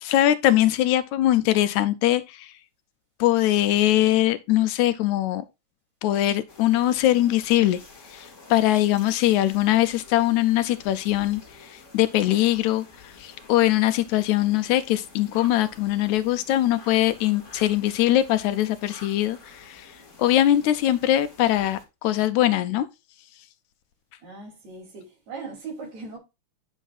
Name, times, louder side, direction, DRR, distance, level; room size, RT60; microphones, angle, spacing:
voice 1, 0.0-2.5 3.2-5.4 6.0-7.8 8.1-19.9 20.2-22.9, left 13 dB, 80° left, 1.9 m, -22 dB
sound 1, 6.5-21.8, left 3 dB, 30° left, 1.8 m, -49 dB
voice 2, 24.2-26.2, right 4 dB, 65° right, 4.1 m, -39 dB
10.0 x 6.3 x 2.4 m
omnidirectional pair, 3.5 m